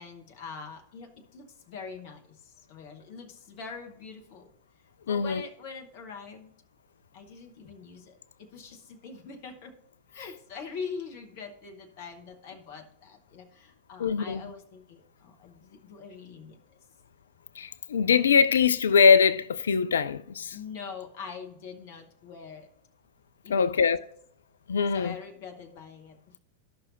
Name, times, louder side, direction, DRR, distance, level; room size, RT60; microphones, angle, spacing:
voice 1, 0.0-4.5 5.0-6.5 7.1-9.7 10.1-16.8 20.5-22.7 23.4-23.9 24.9-26.4, left 5 dB, 45° left, 1.2 m, -43 dB
voice 2, 5.1-5.4 14.0-14.4 17.6-20.5 23.5-24.0 24.7-25.2, left 6 dB, 65° left, 0.3 m, -22 dB
13.0 x 6.0 x 2.6 m
figure-of-eight pair, 90°, 0 cm